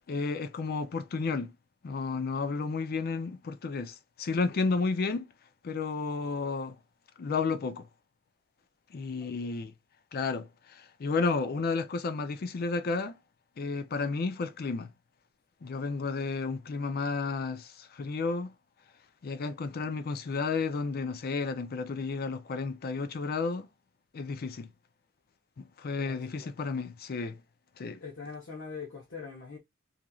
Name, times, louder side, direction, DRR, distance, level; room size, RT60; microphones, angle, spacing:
voice 1, 0.1-1.5 1.8-5.3 5.6-6.8 7.2-7.9 8.9-9.7 10.1-13.2 13.6-14.9 15.6-18.5 19.2-23.7 24.1-24.7 25.6-27.4 27.8-28.0, left 4 dB, 50° left, 0.4 m, -32 dB
voice 2, 9.2-9.6 26.0-26.6 28.0-29.6, left 5 dB, 70° left, 0.9 m, -43 dB
3.0 x 2.5 x 2.3 m
head